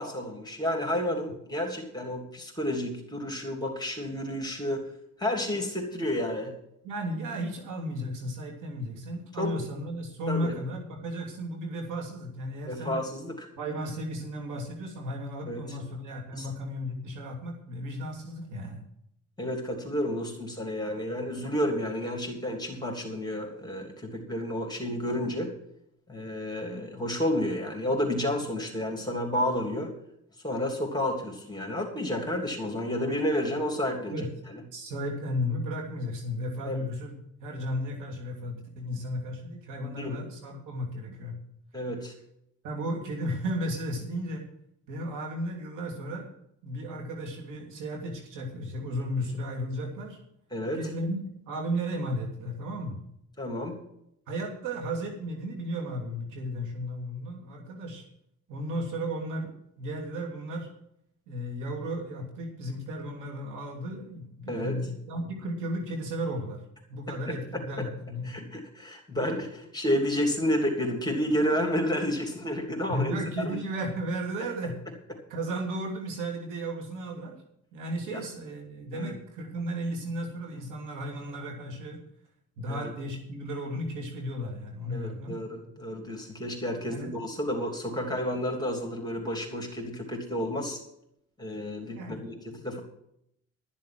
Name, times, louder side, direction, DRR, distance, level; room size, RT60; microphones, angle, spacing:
voice 1, 0.0-4.8 5.2-6.5 9.4-9.5 10.3-10.5 12.7-13.5 15.5-15.6 16.4-16.5 19.4-25.5 26.1-29.9 30.4-34.6 36.7-36.8 40.0-40.2 41.7-42.1 50.5-50.8 53.4-53.8 64.5-64.8 67.1-67.9 68.2-73.2 73.4-73.6 78.1-78.2 78.9-79.1 82.7-82.9 84.9-90.8 91.4-92.8, left 1 dB, 15° left, 2 dB, 3.1 m, -31 dB
voice 2, 6.8-13.0 13.6-18.8 34.1-34.3 34.7-37.1 37.4-41.4 42.6-44.5 44.9-46.3 46.6-50.2 50.7-53.0 54.3-58.0 58.5-59.5 59.8-60.7 61.3-66.6 66.9-68.3 72.9-74.8 75.3-77.4 77.7-82.0 82.6-85.4 86.8-87.1 92.0-92.3, equal, 90° right, 1 dB, 2.9 m, -34 dB
13.0 x 7.4 x 7.6 m, 0.73 s
cardioid pair, 90°, 30 cm